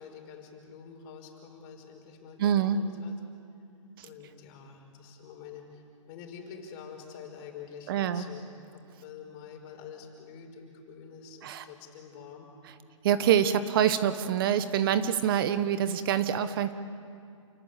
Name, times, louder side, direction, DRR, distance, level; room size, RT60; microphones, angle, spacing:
voice 1, 0.0-3.1 4.0-5.8 6.1-12.5, left 7 dB, 35° left, 3 dB, 5.1 m, -47 dB
voice 2, 2.4-2.8 4.0-4.1 7.9-8.3 11.4-11.6 13.0-16.7, right 9 dB, 45° right, 12 dB, 1.1 m, -25 dB
29.0 x 19.0 x 8.3 m, 2.4 s
hypercardioid pair, 140°, 17 cm